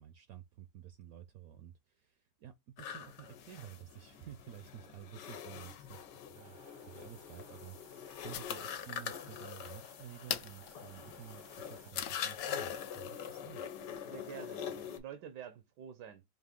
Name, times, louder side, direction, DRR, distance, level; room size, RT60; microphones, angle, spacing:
voice 1, 0.0-13.7, right 11 dB, 70° right, 0.9 m, -52 dB
sound 1, 2.8-15.0, left 8 dB, 85° left, 1.4 m, -44 dB
sound 2, 6.3-11.9, right 5 dB, 45° right, 0.6 m, -61 dB
sound 3, 6.9-12.5, left 11 dB, 70° left, 0.9 m, -45 dB
voice 2, 14.1-16.2, right 9 dB, 85° right, 1.3 m, -48 dB
4.8 x 2.7 x 3.6 m
omnidirectional pair, 1.8 m